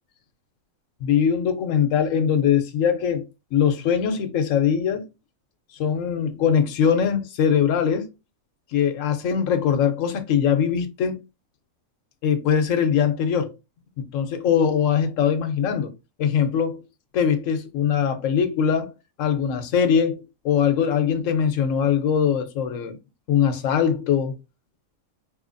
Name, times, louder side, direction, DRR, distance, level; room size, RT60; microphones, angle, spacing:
voice 1, 1.0-3.2 3.5-5.1 5.8-8.1 8.7-11.2 12.2-13.5 14.0-15.9 16.2-16.8 17.1-18.9 19.2-23.0 23.3-24.4, left 7 dB, 70° left, 1.0 m, -21 dB
4.5 x 2.7 x 2.5 m
omnidirectional pair, 1.5 m